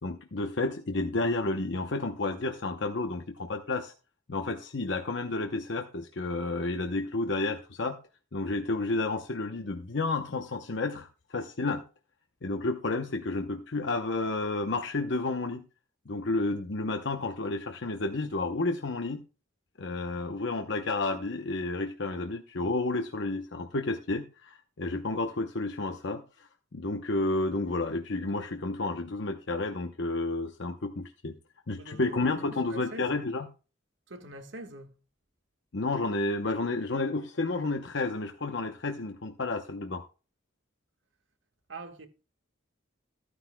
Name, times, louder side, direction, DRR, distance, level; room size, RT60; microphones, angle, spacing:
voice 1, 0.0-3.9 4.3-8.0 8.3-11.8 12.4-15.6 16.1-19.2 19.8-31.4 31.7-33.5 35.7-40.0, left 2 dB, 60° left, 0.8 m, -31 dB
voice 2, 31.8-33.2 34.1-34.9 41.7-42.1, right 1 dB, 70° right, 1.5 m, -44 dB
13.5 x 9.8 x 2.2 m
head